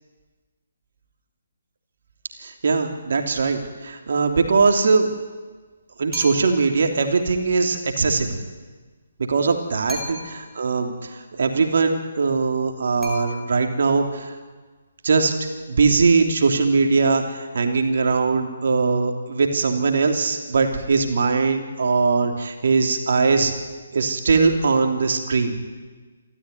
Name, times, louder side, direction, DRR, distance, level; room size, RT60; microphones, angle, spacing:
voice 1, 2.4-5.1 6.0-8.4 9.2-14.3 15.0-15.3 15.7-23.5 23.9-25.6, right 4 dB, 55° right, 4 dB, 3.1 m, -21 dB
sound 1, 6.1-6.7 9.9-10.6 13.0-13.8, left 2 dB, ahead, 4.3 m, -36 dB
28.0 x 14.0 x 9.6 m, 1.4 s
figure-of-eight pair, 140°, 0 cm